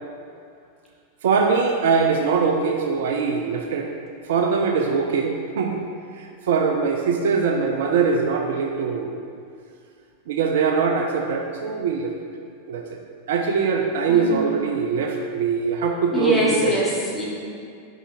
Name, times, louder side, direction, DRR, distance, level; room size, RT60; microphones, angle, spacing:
voice 1, 1.2-3.9 4.2-5.8 6.2-9.2 10.3-12.1 12.7-12.9 13.3-16.8, right 5 dB, 55° right, 2 dB, 0.4 m, -22 dB
voice 2, 14.1-14.4 16.1-17.3, equal, 5° left, -7 dB, 1.5 m, -23 dB
5.4 x 4.8 x 4.2 m, 2.3 s
figure-of-eight pair, 90°, 0 cm